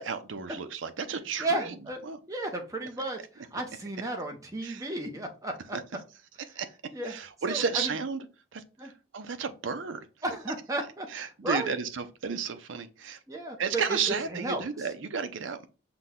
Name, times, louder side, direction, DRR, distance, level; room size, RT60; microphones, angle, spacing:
voice 1, 0.0-1.7 2.0-2.2 4.6-4.9 5.7-5.8 6.6-6.7 7.0-8.3 8.5-10.1 11.1-13.2 13.6-15.7, right 6 dB, 85° right, 0.5 m, -33 dB
voice 2, 1.4-2.0 2.3-5.8 6.9-7.2 7.5-7.9 8.8-8.9 10.2-11.8 13.3-14.0 14.3-14.6, right 2 dB, 15° right, 0.7 m, -33 dB
5.9 x 2.2 x 3.6 m
head